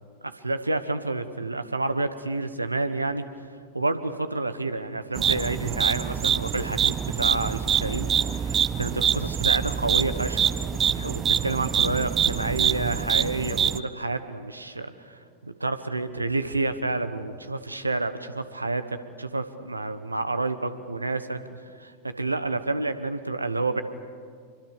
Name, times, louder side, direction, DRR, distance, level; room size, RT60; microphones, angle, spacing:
voice 1, 0.2-3.2 3.7-10.5 10.9-23.8, right 2 dB, 80° right, 11 dB, 1.2 m, -29 dB
sound 1, 5.1-13.8, right 8 dB, 25° right, 0.6 m, -25 dB
25.5 x 23.5 x 6.9 m, 2.1 s
figure-of-eight pair, 90°, 0 cm